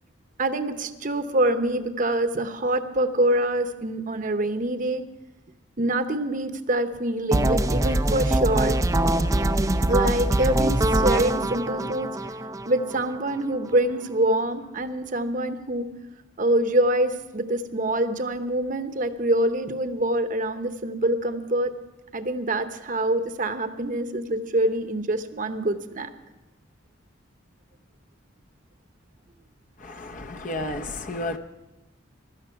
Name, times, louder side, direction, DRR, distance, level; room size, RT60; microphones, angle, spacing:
voice 1, 0.4-5.0 5.8-8.8 9.9-12.1 12.7-15.8 16.4-21.7 22.1-26.1, right 1 dB, 45° right, 0.9 m, -25 dB
sound 1, 7.3-13.3, right 1 dB, 15° right, 0.5 m, -23 dB
voice 2, 29.8-31.4, left 1 dB, 40° left, 0.8 m, -32 dB
16.0 x 12.5 x 5.9 m
head